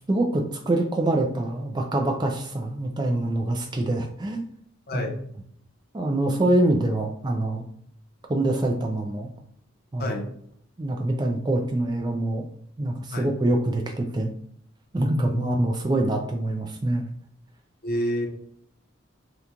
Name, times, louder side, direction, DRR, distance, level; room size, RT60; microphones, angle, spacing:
voice 1, 0.1-4.4 4.9-5.1 5.9-7.6 8.3-9.3 9.9-10.2 10.8-12.4 12.8-14.3 14.9-17.1, right 1 dB, 20° right, 2 dB, 0.3 m, -25 dB
voice 2, 15.1-15.6 17.8-18.4, equal, 45° left, 3 dB, 0.6 m, -28 dB
2.9 x 2.2 x 3.7 m, 0.65 s
head